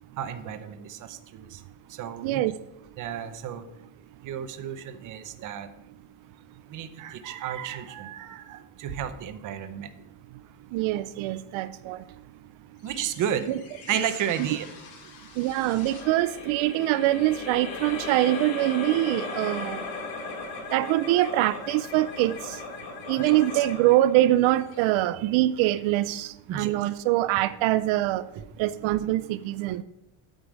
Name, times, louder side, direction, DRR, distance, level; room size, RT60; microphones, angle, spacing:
voice 1, 0.2-1.6 1.9-2.4 3.0-3.6 4.2-5.7 6.7-9.9 12.8-13.5 13.9-14.7 26.5-26.7, right 9 dB, 40° right, 10 dB, 0.7 m, -32 dB
voice 2, 10.7-12.0 13.5-13.6 14.4-14.5 15.4-19.8 20.7-22.6 23.1-28.2 28.6-29.8, right 15 dB, 85° right, 14 dB, 0.6 m, -24 dB
sound 1, 12.8-25.5, left 4 dB, 85° left, 2.5 m, -38 dB
8.9 x 5.2 x 7.3 m, 0.89 s
cardioid pair, 180°, 46 cm